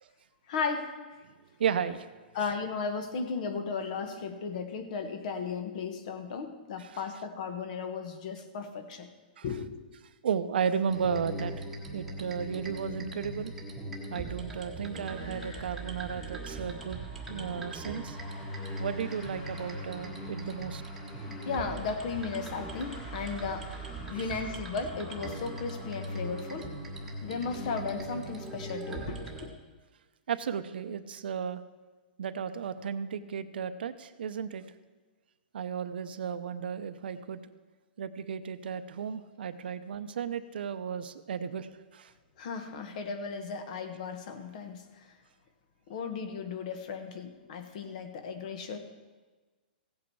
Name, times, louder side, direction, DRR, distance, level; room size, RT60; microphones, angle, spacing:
voice 1, 0.5-0.9 2.3-9.1 9.4-9.8 21.2-26.7 27.2-29.5 42.4-45.1 45.9-48.8, left 5 dB, 45° left, 8 dB, 1.3 m, -35 dB
voice 2, 1.6-2.1 6.8-6.9 9.4-9.5 10.2-11.6 11.9-13.5 14.1-17.0 17.3-18.2 18.8-20.8 30.3-31.6 32.2-34.6 35.5-37.4 38.0-42.1, right 7 dB, 75° right, 11 dB, 0.8 m, -34 dB
sound 1, 10.9-29.5, right 1 dB, 5° right, 1.3 m, -40 dB
sound 2, 15.0-28.7, left 1 dB, 20° left, 2.5 m, -51 dB
16.0 x 8.5 x 4.7 m, 1.3 s
hypercardioid pair, 160°, 5 cm